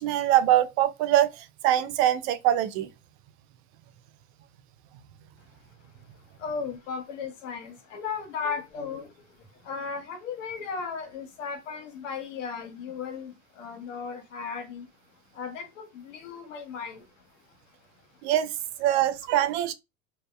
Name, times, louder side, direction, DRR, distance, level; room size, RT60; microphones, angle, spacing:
voice 1, 0.0-2.9 18.2-18.5 18.8-19.7, right 12 dB, 60° right, 0.5 m, -23 dB
voice 2, 6.4-14.9 15.3-17.1 17.5-17.6, left 5 dB, 85° left, 0.9 m, -36 dB
2.8 x 2.0 x 2.3 m
hypercardioid pair, 95°, 37 cm